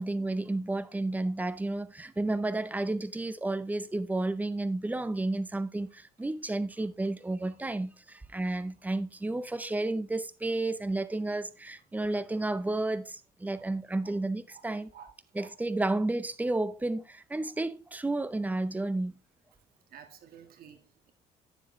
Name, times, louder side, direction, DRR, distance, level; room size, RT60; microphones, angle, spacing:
voice 1, 0.0-14.9 15.4-19.2, right 2 dB, 10° right, 0.6 m, -32 dB
voice 2, 8.1-8.8 9.8-9.9 11.9-12.0 13.5-14.1 14.5-15.5 19.5-21.1, right 8 dB, 60° right, 1.6 m, -55 dB
9.9 x 7.3 x 3.1 m
cardioid pair, 110°, 17 cm